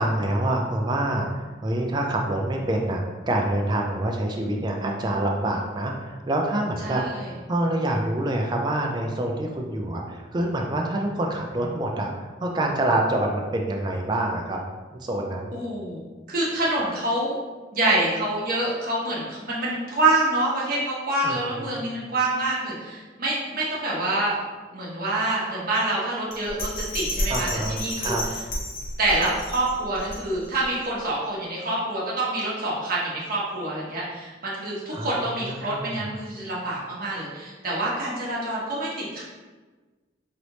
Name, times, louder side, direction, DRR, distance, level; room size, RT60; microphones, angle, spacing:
voice 1, 0.0-7.0 7.5-14.6 14.9-15.6 21.2-21.9 27.3-28.2 34.9-36.1, right 1 dB, 25° right, 0 dB, 0.4 m, -26 dB
voice 2, 6.8-7.3 15.5-17.3 17.7-24.4 24.7-28.1 29.0-39.2, right 2 dB, 50° right, -6 dB, 1.2 m, -26 dB
Bell, 26.3-30.6 31.1-31.2, left 1 dB, 50° left, 0.8 m, -31 dB
3.2 x 3.0 x 4.0 m, 1.3 s
head